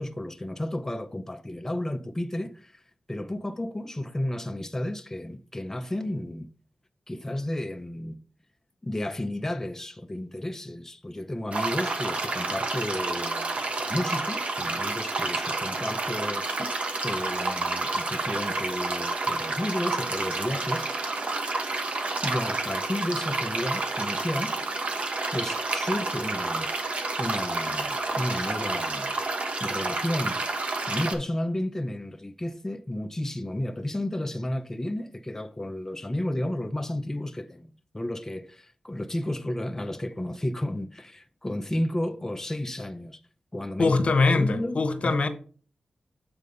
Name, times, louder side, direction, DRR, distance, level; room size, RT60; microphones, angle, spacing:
voice 1, 0.0-2.8 3.1-6.5 7.1-8.2 8.8-13.6 13.9-16.7 17.0-20.9 21.9-24.5 25.3-26.7 27.2-29.1 29.6-30.6 30.9-43.2 43.5-44.0 44.4-45.2, left 1 dB, 20° left, 0.6 m, -32 dB
sound 1, 11.5-31.1, right 3 dB, 60° right, 1.3 m, -29 dB
voice 2, 43.8-45.3, left 3 dB, 55° left, 1.1 m, -22 dB
7.7 x 3.4 x 5.4 m
cardioid pair, 50°, 2 cm